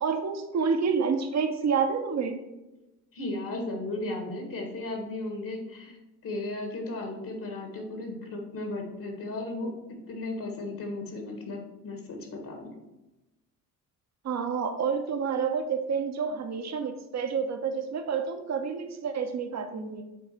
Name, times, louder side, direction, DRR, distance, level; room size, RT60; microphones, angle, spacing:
voice 1, 0.0-2.5 14.2-20.0, right 6 dB, 35° right, 7 dB, 0.9 m, -29 dB
voice 2, 3.1-12.8, left 2 dB, 45° left, 3 dB, 1.5 m, -35 dB
7.2 x 4.1 x 4.4 m, 1.0 s
hypercardioid pair, 55°, 46 cm